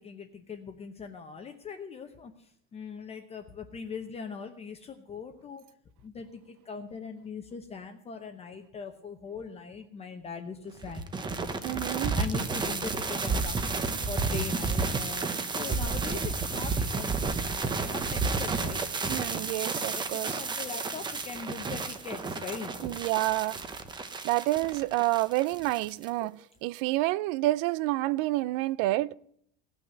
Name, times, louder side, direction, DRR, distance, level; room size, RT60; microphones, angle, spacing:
voice 1, 0.0-5.6 6.0-11.1 12.1-13.6 14.1-17.4 17.8-18.8 20.0-22.8 26.2-26.3, left 5 dB, 20° left, 0.8 m, -41 dB
sound 1, 10.8-26.1, right 4 dB, 15° right, 0.8 m, -31 dB
voice 2, 11.6-12.2 19.1-20.4 22.8-23.6 24.2-26.3 26.6-29.2, right 18 dB, 75° right, 0.6 m, -28 dB
17.5 x 6.1 x 7.7 m
cardioid pair, 175°, 30 cm